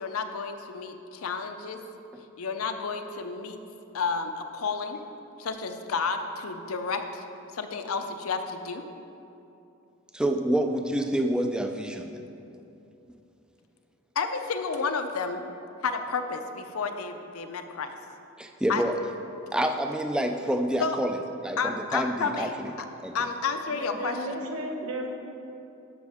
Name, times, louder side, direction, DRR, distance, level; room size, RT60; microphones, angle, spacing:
voice 1, 0.0-1.8 2.4-3.6 3.9-5.0 5.4-7.2 7.5-8.8 14.2-15.4 15.8-17.9 18.7-18.8 20.8-21.0 21.6-22.9 23.1-24.4, left 4 dB, 85° left, 7 dB, 0.6 m, -31 dB
voice 2, 10.1-12.2 18.4-19.0 19.5-22.7 23.0-23.1, right 1 dB, 5° right, 5 dB, 0.4 m, -28 dB
voice 3, 23.7-25.1, right 1 dB, 90° right, 1 dB, 1.1 m, -34 dB
13.0 x 6.0 x 3.5 m, 2.8 s
head